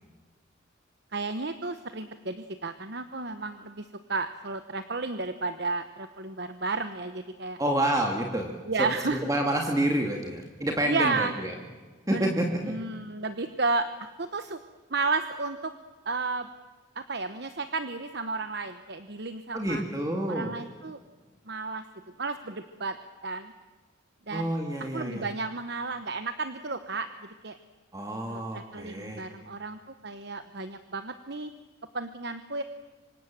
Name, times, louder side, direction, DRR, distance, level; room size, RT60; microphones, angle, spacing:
voice 1, 1.1-7.6 8.7-9.2 10.8-11.3 12.1-12.3 12.6-13.9 14.2-14.6 14.9-15.7 16.0-16.5 16.9-19.8 20.3-21.0 21.5-21.8 22.2-23.0 23.2-23.5 24.3-24.5 24.9-27.6 28.3-31.5 31.9-32.6, right 3 dB, 55° right, 9 dB, 1.1 m, -32 dB
voice 2, 7.6-8.5 8.8-11.5 12.1-12.7 19.5-20.5 24.3-25.3 27.9-29.3, right 1 dB, 15° right, 1 dB, 2.3 m, -28 dB
26.5 x 25.5 x 7.6 m, 1.4 s
head